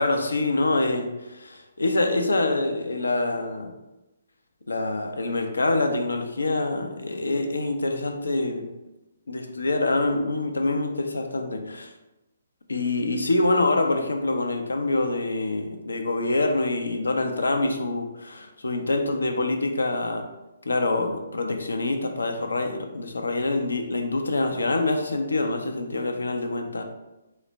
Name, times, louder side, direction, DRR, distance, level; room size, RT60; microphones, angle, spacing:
voice 1, 0.0-3.7 4.7-8.7 9.3-11.9 12.7-20.3 20.6-26.8, left 2 dB, 75° left, 5 dB, 0.5 m, -25 dB
3.9 x 2.1 x 4.4 m, 1.0 s
figure-of-eight pair, 135°, 0 cm